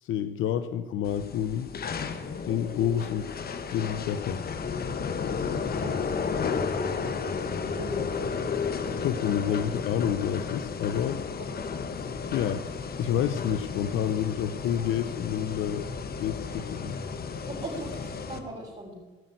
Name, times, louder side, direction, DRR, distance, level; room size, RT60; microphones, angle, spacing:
voice 1, 0.0-1.7 2.5-3.3 3.7-4.4 8.9-11.2 12.3-12.6 13.0-15.9 16.2-17.0, left 9 dB, 85° left, 10 dB, 0.8 m, -29 dB
sound 1, 1.0-18.4, left 5 dB, 50° left, 1.4 m, -33 dB
voice 2, 5.7-8.3 9.2-9.7 11.4-11.8 16.5-16.8 17.4-18.9, right 1 dB, 35° right, -5 dB, 4.4 m, -40 dB
16.5 x 6.3 x 9.2 m, 1.2 s
cardioid pair, 90°, 20 cm